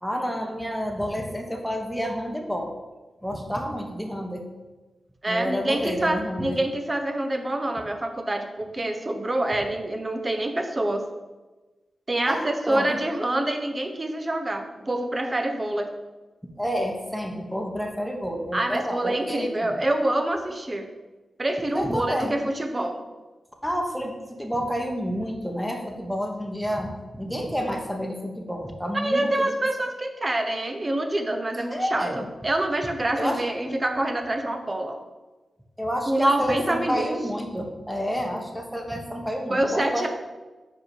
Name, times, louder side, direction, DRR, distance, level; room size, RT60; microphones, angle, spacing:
voice 1, 0.0-2.7 3.2-4.5 5.3-6.7 12.3-13.0 16.6-19.8 21.7-22.4 23.6-29.5 31.7-32.3 33.2-33.6 35.8-40.1, equal, ahead, 2 dB, 1.2 m, -29 dB
voice 2, 5.2-11.0 12.1-15.9 18.5-20.9 21.4-23.0 28.9-35.0 36.1-37.1 39.5-40.1, right 1 dB, 30° right, 5 dB, 0.9 m, -26 dB
5.6 x 4.8 x 4.9 m, 1.2 s
cardioid pair, 55°, 0 cm